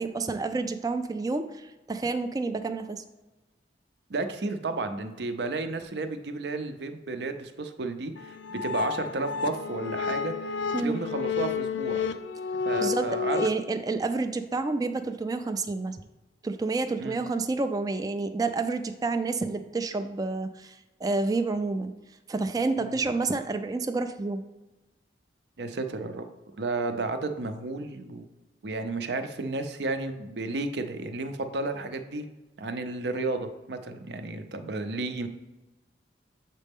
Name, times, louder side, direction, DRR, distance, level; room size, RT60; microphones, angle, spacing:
voice 1, 0.0-3.0 10.7-11.0 12.8-16.0 16.4-21.9 22.3-24.4, right 3 dB, 20° right, 8 dB, 0.3 m, -29 dB
voice 2, 4.1-12.0 12.6-13.4 17.0-17.2 22.8-23.0 25.6-26.3 26.6-28.3 28.6-32.2 32.6-35.3, right 3 dB, 70° right, 8 dB, 0.6 m, -32 dB
sound 1, 8.2-13.5, left 5 dB, 85° left, 0.4 m, -30 dB
7.4 x 4.1 x 3.6 m, 1.1 s
head